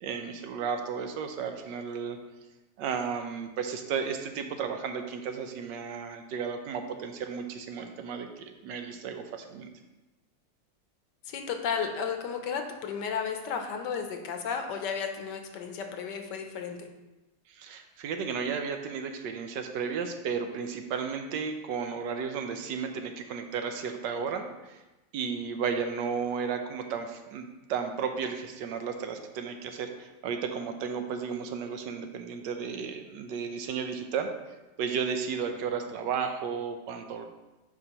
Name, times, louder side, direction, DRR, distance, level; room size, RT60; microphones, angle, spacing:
voice 1, 0.0-2.2 2.8-9.7 17.5-24.8 25.1-34.3 34.8-37.3, right 6 dB, 75° right, 6 dB, 1.2 m, -33 dB
voice 2, 11.3-16.9, left 6 dB, 70° left, 5 dB, 1.3 m, -33 dB
9.6 x 4.7 x 2.9 m, 1.1 s
omnidirectional pair, 2.0 m